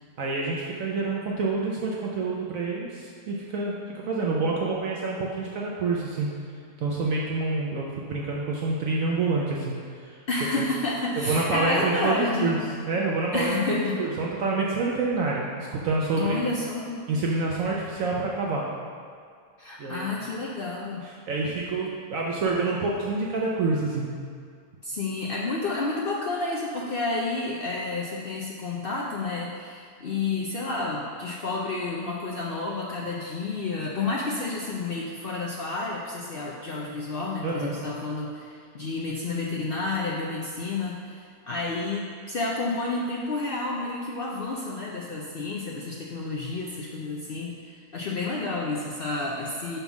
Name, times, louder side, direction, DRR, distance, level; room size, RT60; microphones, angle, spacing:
voice 1, 0.2-6.3 6.8-10.2 10.5-10.6 11.2-12.6 12.9-16.4 17.1-18.7 19.8-20.1 21.0-24.1 37.4-37.8, right 3 dB, 65° right, -3 dB, 1.0 m, -27 dB
voice 2, 10.3-12.6 13.3-14.0 16.2-17.0 19.6-21.1 24.8-49.8, left 3 dB, 75° left, -3 dB, 0.5 m, -30 dB
5.4 x 4.2 x 5.9 m, 2.2 s
omnidirectional pair, 1.7 m